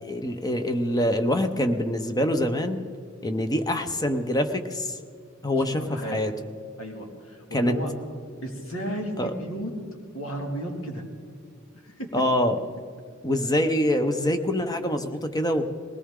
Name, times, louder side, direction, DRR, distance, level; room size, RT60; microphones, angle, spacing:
voice 1, 0.0-2.8 3.2-5.0 5.4-6.3 7.5-7.8 9.2-9.3 12.1-12.6 13.2-15.6, left 1 dB, 20° left, 7 dB, 0.8 m, -25 dB
voice 2, 5.6-6.2 6.8-7.9 8.4-9.7 10.1-11.0 11.7-12.1, right 1 dB, 80° left, 1 dB, 2.5 m, -34 dB
20.0 x 18.0 x 3.7 m, 2.1 s
head